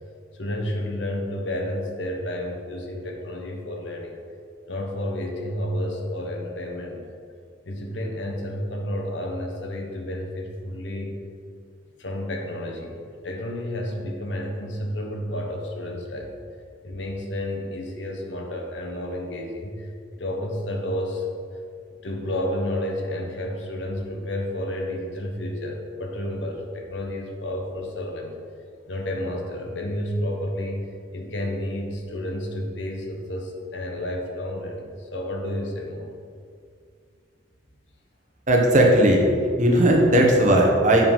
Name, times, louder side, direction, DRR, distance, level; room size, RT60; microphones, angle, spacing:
voice 1, 0.3-4.2 4.7-7.0 7.7-11.3 12.0-16.3 16.8-21.3 22.0-28.4 28.9-36.1, left 1 dB, 75° left, 1 dB, 1.2 m, -31 dB
voice 2, 38.5-39.3 39.6-41.1, right 1 dB, 40° right, 0 dB, 1.2 m, -17 dB
7.2 x 5.6 x 5.5 m, 2.2 s
head